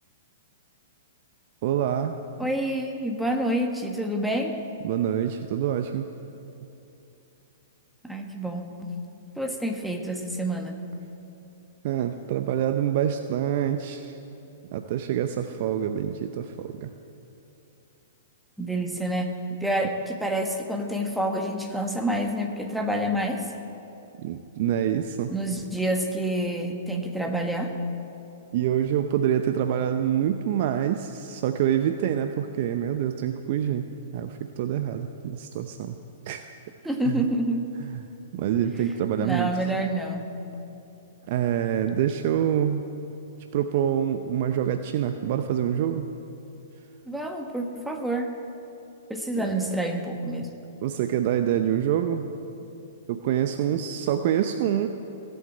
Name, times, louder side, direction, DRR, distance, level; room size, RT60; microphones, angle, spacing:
voice 1, 1.6-2.2 4.8-6.1 11.8-14.1 14.7-16.9 24.2-25.3 28.5-33.9 34.1-36.0 36.3-36.4 37.0-37.3 37.9-38.0 38.3-39.5 41.3-42.8 43.5-46.1 49.4-49.8 50.8-52.3 53.1-54.9, right 10 dB, 50° right, 8 dB, 0.7 m, -26 dB
voice 2, 2.4-4.6 8.0-9.0 9.4-10.8 18.6-19.3 19.6-23.5 25.3-27.8 36.8-37.8 39.2-40.4 47.1-48.3 49.1-50.5, right 1 dB, ahead, 3 dB, 1.5 m, -28 dB
17.0 x 8.0 x 8.7 m, 2.8 s
figure-of-eight pair, 110°, 0 cm